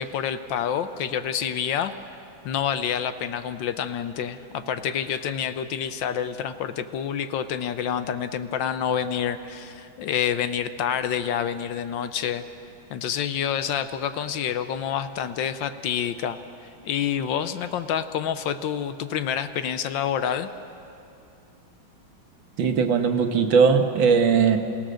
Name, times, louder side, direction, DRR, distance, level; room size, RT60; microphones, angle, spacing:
voice 1, 0.0-1.9 2.4-12.4 12.9-20.5, left 8 dB, 70° left, 11 dB, 1.4 m, -28 dB
voice 2, 22.6-24.6, right 6 dB, 70° right, 6 dB, 1.9 m, -19 dB
29.0 x 16.5 x 6.4 m, 2.7 s
omnidirectional pair, 2.2 m